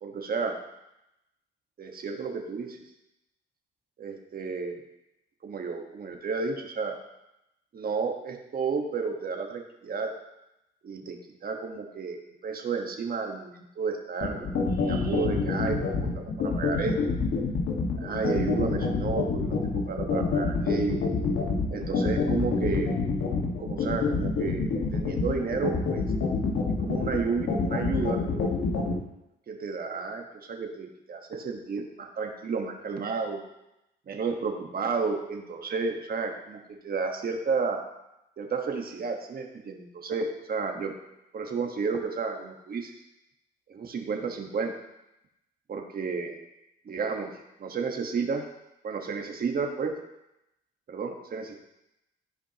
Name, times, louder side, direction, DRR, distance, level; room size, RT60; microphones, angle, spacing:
voice 1, 0.0-0.5 1.8-2.8 4.0-4.8 5.4-6.9 7.7-10.1 10.8-16.1 16.4-16.9 18.0-19.6 19.9-21.0 21.7-22.9 23.6-26.0 26.8-28.2 29.5-33.4 34.1-37.8 38.4-40.9 41.3-42.9 43.7-44.7 45.7-46.4 46.8-47.3 47.6-48.4 48.8-49.9 50.9-51.5, right 5 dB, 50° right, 3 dB, 1.4 m, -32 dB
sound 1, 14.2-28.9, left 5 dB, 70° left, 1.6 m, -27 dB
14.5 x 5.0 x 3.0 m, 0.89 s
cardioid pair, 90°, 20 cm